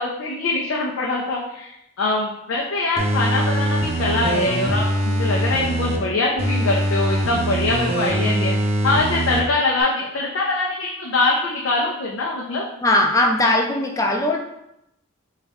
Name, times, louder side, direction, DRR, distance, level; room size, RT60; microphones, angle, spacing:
voice 1, 0.0-8.6 8.8-12.6, left 2 dB, 75° left, -3 dB, 0.5 m, -23 dB
sound 1, 3.0-6.0 6.4-9.4 9.8-9.9, right 1 dB, 30° right, 0.6 m, -22 dB
voice 2, 12.8-14.4, left 1 dB, 15° left, 2 dB, 0.4 m, -19 dB
4.1 x 2.4 x 3.4 m, 0.82 s
head